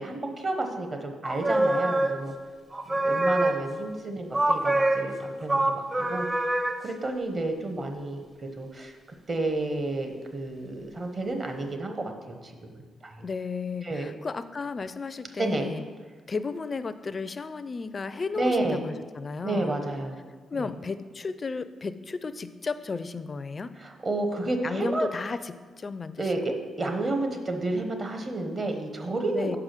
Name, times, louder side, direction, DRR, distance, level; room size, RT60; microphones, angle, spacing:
voice 1, 0.0-2.3 2.9-6.5 6.8-8.2 8.6-9.0 9.3-13.2 13.8-14.1 15.4-15.6 18.4-18.8 19.4-20.2 20.6-20.7 23.8-25.1 26.2-29.6, right 2 dB, 40° right, 5 dB, 1.0 m, -31 dB
sound 1, 1.2-2.4 2.7-3.9 4.3-6.9, right 1 dB, 20° right, 0.6 m, -26 dB
voice 2, 13.2-15.9 16.3-19.8 20.5-23.7 24.6-26.6 29.3-29.6, left 4 dB, 40° left, 12 dB, 0.4 m, -34 dB
5.8 x 4.9 x 6.6 m, 1.5 s
cardioid pair, 80°, 0 cm